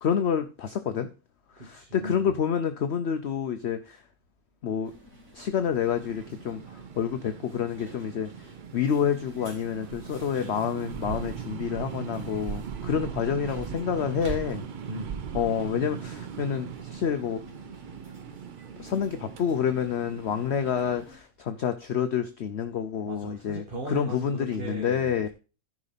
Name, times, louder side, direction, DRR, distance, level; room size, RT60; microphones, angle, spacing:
voice 1, 0.0-1.1 1.6-4.0 4.6-4.9 5.3-8.3 8.7-14.7 15.3-17.4 18.8-25.3, left 8 dB, 55° left, 0.9 m, -28 dB
voice 2, 1.6-2.3 14.8-15.4 23.1-25.3, right 1 dB, 35° right, 1.8 m, -38 dB
sound 1, 4.8-21.2, equal, 65° right, 3.7 m, -51 dB
sound 2, 5.8-21.0, right 8 dB, 85° right, 0.4 m, -39 dB
14.0 x 5.3 x 4.1 m
omnidirectional pair, 1.6 m